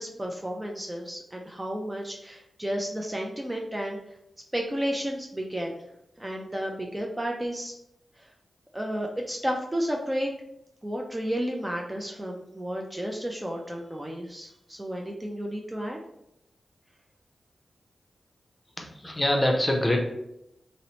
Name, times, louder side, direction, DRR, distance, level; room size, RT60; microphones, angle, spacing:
voice 1, 0.0-4.0 4.5-5.8 6.2-7.7 8.2-8.3 8.7-10.3 10.8-16.0, equal, 15° right, 0 dB, 0.4 m, -32 dB
voice 2, 18.8-20.0, left 1 dB, 20° left, 1 dB, 0.6 m, -24 dB
2.7 x 2.0 x 2.8 m, 0.81 s
cardioid pair, 50°, 0 cm